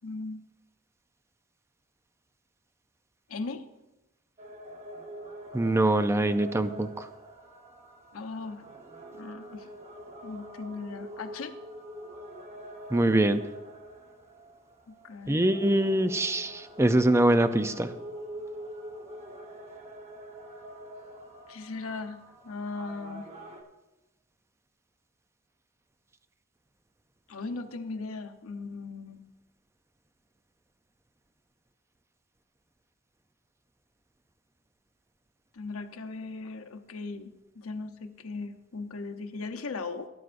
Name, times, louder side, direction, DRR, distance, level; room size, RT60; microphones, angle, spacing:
voice 1, 0.0-0.4 3.3-3.7 8.1-8.7 9.1-9.7 10.2-11.6 14.9-15.4 21.5-23.3 27.3-29.2 35.5-40.1, left 3 dB, 85° left, 6 dB, 0.9 m, -38 dB
sound 1, 4.4-23.6, equal, 30° right, 1.1 m, -45 dB
voice 2, 5.5-7.1 12.9-13.4 15.3-17.9, right 1 dB, 15° right, 10 dB, 0.4 m, -24 dB
17.5 x 9.4 x 2.6 m, 1.0 s
head